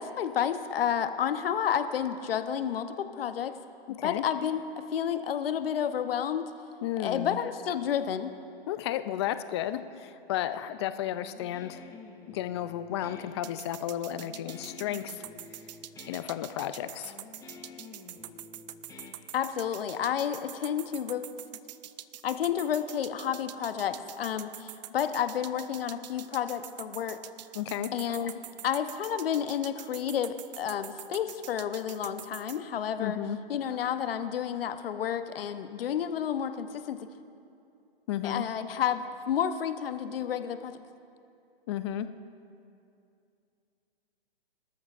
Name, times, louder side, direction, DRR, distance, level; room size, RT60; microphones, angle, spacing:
voice 1, 0.0-3.6 3.9-4.6 4.9-6.5 7.0-8.3 19.3-21.3 22.2-27.2 27.9-28.3 28.6-33.2 33.5-37.1 38.2-40.8, left 9 dB, 65° left, 10 dB, 0.9 m, -30 dB
voice 2, 6.8-7.4 8.7-11.8 12.3-15.2 16.1-17.2 27.5-27.9 33.0-33.4 38.1-38.4 41.7-42.1, left 11 dB, 30° left, 12 dB, 0.4 m, -33 dB
Guitar, 11.2-19.8, left 4 dB, 10° left, 0.8 m, -50 dB
sound 1, 13.4-32.6, right 13 dB, 45° right, 0.5 m, -44 dB
24.5 x 13.5 x 2.5 m, 2.6 s
hypercardioid pair, 135°, 30 cm